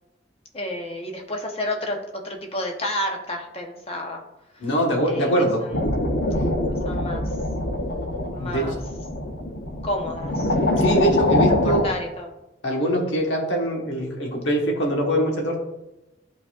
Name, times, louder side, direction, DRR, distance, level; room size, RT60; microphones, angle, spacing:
voice 1, 0.5-2.0 2.2-4.2 5.0-5.3 5.6-5.9 6.8-7.2 8.3-8.7 9.8-10.5 11.6-12.3, left 1 dB, 30° left, 2 dB, 0.9 m, -30 dB
voice 2, 4.6-5.7 8.4-8.7 10.8-11.8 12.6-15.6, right 1 dB, 80° left, -1 dB, 1.4 m, -23 dB
sound 1, 5.7-11.9, left 1 dB, 55° left, 0.8 m, -24 dB
11.5 x 4.0 x 2.4 m, 0.95 s
head